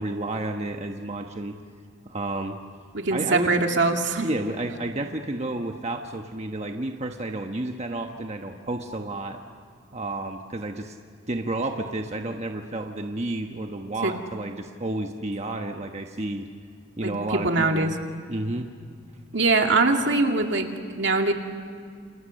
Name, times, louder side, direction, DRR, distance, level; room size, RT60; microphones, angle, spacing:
voice 1, 0.0-1.5 2.0-2.6 3.1-3.5 4.2-9.4 9.9-11.0 11.3-16.5 17.0-17.9 18.3-18.7, right 2 dB, 35° right, 4 dB, 1.2 m, -31 dB
voice 2, 2.9-4.3 14.0-14.1 17.0-17.9 19.3-21.3, right 3 dB, 70° right, 3 dB, 2.4 m, -23 dB
29.0 x 28.0 x 6.5 m, 2.2 s
head